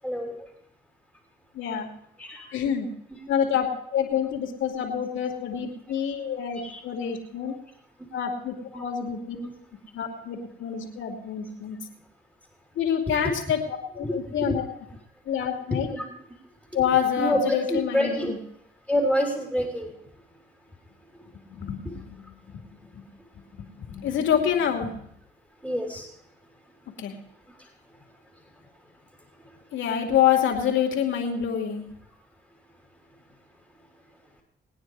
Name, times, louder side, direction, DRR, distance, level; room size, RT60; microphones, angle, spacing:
voice 1, 0.0-0.4 2.2-2.5 5.5-5.7 6.6-6.8 8.7-8.8 9.4-9.5 13.2-13.3 14.0-14.6 15.7-16.1 17.2-18.3 18.9-19.9 25.6-26.1, equal, 5° right, -1 dB, 3.0 m, -27 dB
voice 2, 1.5-1.9 2.5-2.9 3.3-7.5 8.1-9.4 9.9-11.8 12.8-14.6 15.3-15.9 16.7-18.4 21.5-22.2 23.8-25.0 27.0-27.1 29.7-31.8, left 8 dB, 75° left, 2 dB, 2.6 m, -27 dB
20.5 x 9.6 x 4.7 m, 0.75 s
cardioid pair, 90°, 20 cm